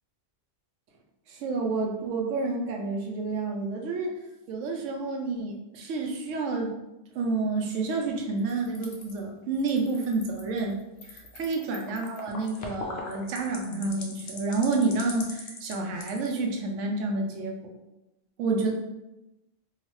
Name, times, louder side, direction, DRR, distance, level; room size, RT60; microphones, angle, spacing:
voice 1, 1.3-4.1 4.5-6.8 7.1-10.8 11.0-17.7 18.4-18.7, right 3 dB, 80° right, 2 dB, 0.9 m, -29 dB
sound 1, 8.4-9.2 9.6-16.3, left 3 dB, 60° left, 0.6 m, -41 dB
2.8 x 2.3 x 3.0 m, 0.96 s
omnidirectional pair, 1.3 m